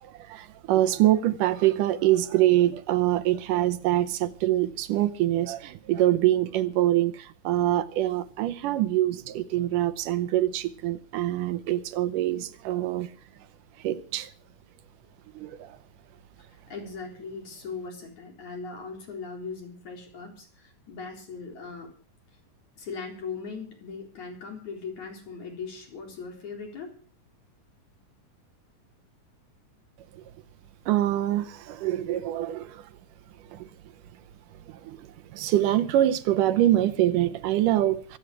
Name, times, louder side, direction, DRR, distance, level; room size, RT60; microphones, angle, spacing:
voice 1, 0.0-13.1 13.8-14.3 15.3-15.8 30.1-30.2 30.9-32.8 33.5-33.7 34.7-38.2, right 14 dB, 80° right, 2.4 m, -25 dB
voice 2, 16.5-21.9 22.8-26.9, left 5 dB, 60° left, 5.3 m, -39 dB
24.5 x 9.1 x 4.8 m
omnidirectional pair, 3.7 m